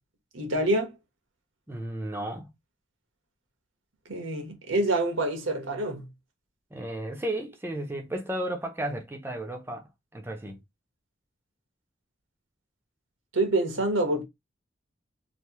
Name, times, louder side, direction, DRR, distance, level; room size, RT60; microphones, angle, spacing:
voice 1, 0.3-0.9 4.1-6.1 13.3-14.2, right 1 dB, 85° right, 1.2 m, -26 dB
voice 2, 1.7-2.5 6.7-10.6, right 1 dB, 10° right, 0.6 m, -34 dB
3.2 x 2.7 x 2.8 m
head